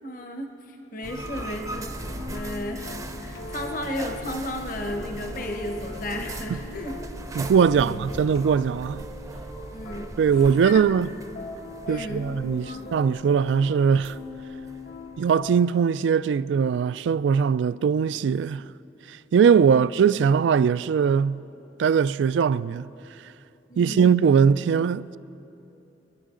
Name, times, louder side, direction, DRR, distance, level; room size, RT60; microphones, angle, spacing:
voice 1, 0.0-7.0 7.7-8.1 9.7-10.1 10.6-10.8 11.9-12.3 12.6-12.9 19.5-19.9 23.7-24.1, left 1 dB, 50° left, 1.0 m, -34 dB
sound 1, 1.0-15.6, right 1 dB, 20° right, 0.5 m, -39 dB
sound 2, 1.2-15.6, left 2 dB, 85° left, 1.7 m, -41 dB
voice 2, 7.4-9.0 10.2-11.1 11.9-14.1 15.2-18.6 19.3-21.4 21.8-22.9 23.8-25.2, right 6 dB, 80° right, 0.3 m, -21 dB
29.0 x 10.5 x 3.8 m
head